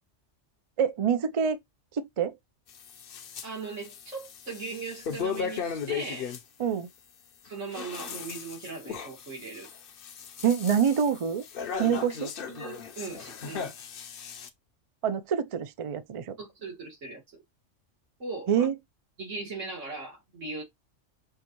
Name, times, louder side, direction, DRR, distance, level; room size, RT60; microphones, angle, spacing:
voice 1, 0.8-1.6 1.9-2.3 6.6-6.9 10.4-11.4 11.8-12.3 15.0-16.3 18.5-18.7, right 7 dB, 60° right, 0.3 m, -26 dB
sound 1, 2.7-3.5 3.8-6.4 7.5-14.5, left 7 dB, 55° left, 0.7 m, -37 dB
voice 2, 3.4-6.3 7.4-9.7 12.5-13.7 16.4-17.2 18.2-18.7 19.2-20.6, right 4 dB, 85° right, 2.5 m, -39 dB
5.6 x 2.6 x 2.9 m
omnidirectional pair, 1.3 m